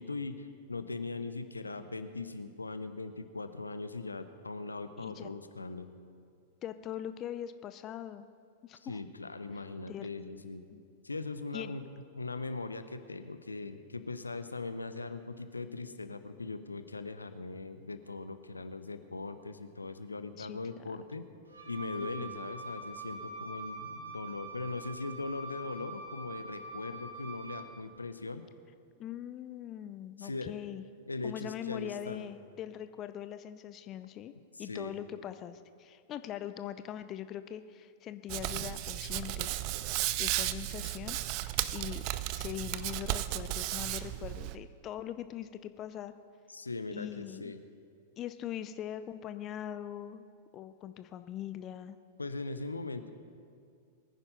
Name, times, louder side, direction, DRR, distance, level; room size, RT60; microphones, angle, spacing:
voice 1, 0.0-5.9 8.7-10.6 11.0-11.9 12.1-21.2 21.7-28.4 30.2-30.5 31.1-32.3 34.6-34.9 46.5-47.6 52.2-53.1, left 3 dB, 80° left, 10 dB, 0.8 m, -40 dB
voice 2, 5.0-5.3 6.6-8.3 8.6-9.0 9.9-10.3 10.7-10.8 11.5-11.7 20.4-20.6 20.9-21.0 22.2-22.3 29.0-30.8 31.2-34.3 34.6-39.6 39.9-41.2 41.7-42.0 42.3-46.1 46.9-47.5 48.2-50.2 50.5-52.0, left 11 dB, 30° left, 12 dB, 0.6 m, -42 dB
Wind instrument woodwind instrument, 21.5-27.8, right 3 dB, 75° right, 2.4 m, -44 dB
Hands, 38.3-44.5, right 15 dB, 40° right, 0.6 m, -34 dB
22.0 x 9.9 x 5.4 m, 2.3 s
figure-of-eight pair, 95°, 0 cm